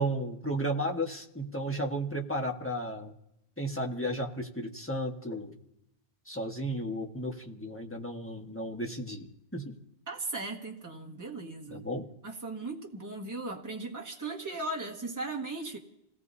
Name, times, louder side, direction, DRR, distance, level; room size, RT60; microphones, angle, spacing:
voice 1, 0.0-3.1 3.6-5.5 6.3-9.8 11.7-12.1, right 1 dB, 10° left, 1 dB, 1.4 m, -33 dB
voice 2, 10.1-11.8 12.2-15.8, right 2 dB, 15° right, 0 dB, 1.6 m, -37 dB
28.5 x 18.0 x 2.8 m, 0.83 s
omnidirectional pair, 1.1 m